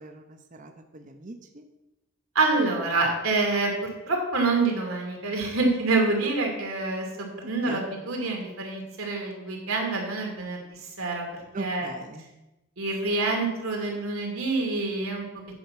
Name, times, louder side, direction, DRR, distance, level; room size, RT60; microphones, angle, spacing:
voice 1, 0.0-1.6 7.7-7.8 11.5-12.2, right 3 dB, 35° right, 6 dB, 0.7 m, -40 dB
voice 2, 2.3-11.3 11.6-11.9 12.8-15.2, right 3 dB, 80° right, 1 dB, 2.4 m, -27 dB
8.6 x 5.7 x 5.8 m, 0.98 s
head